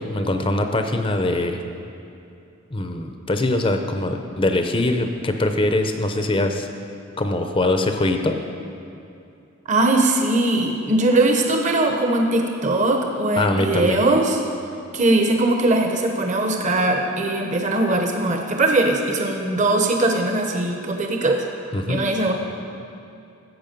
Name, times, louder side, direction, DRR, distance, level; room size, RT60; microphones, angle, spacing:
voice 1, 0.0-1.6 2.7-6.7 7.2-8.4 13.4-14.0 21.7-22.0, left 2 dB, 25° left, 5 dB, 0.6 m, -22 dB
voice 2, 9.7-14.4 14.9-21.4 21.9-22.3, right 2 dB, 35° right, 3 dB, 0.9 m, -20 dB
14.0 x 8.0 x 5.2 m, 2.6 s
head